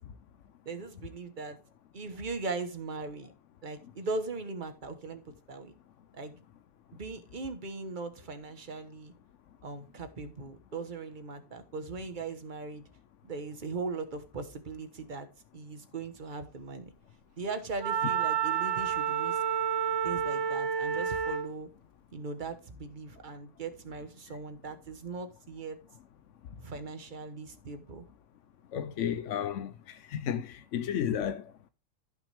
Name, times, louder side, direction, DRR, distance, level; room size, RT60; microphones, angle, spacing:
voice 1, 0.6-1.6 1.9-3.3 3.6-5.7 6.1-6.3 6.9-9.1 9.6-12.8 13.2-15.3 15.5-16.9 17.4-19.4 20.0-21.7 22.1-25.8 26.6-28.1, right 3 dB, 30° right, 1.2 m, -39 dB
Wind instrument woodwind instrument, 17.8-21.5, right 8 dB, 60° right, 0.8 m, -29 dB
voice 2, 28.7-31.7, left 9 dB, 70° left, 0.7 m, -33 dB
14.5 x 6.0 x 3.4 m
omnidirectional pair, 1.9 m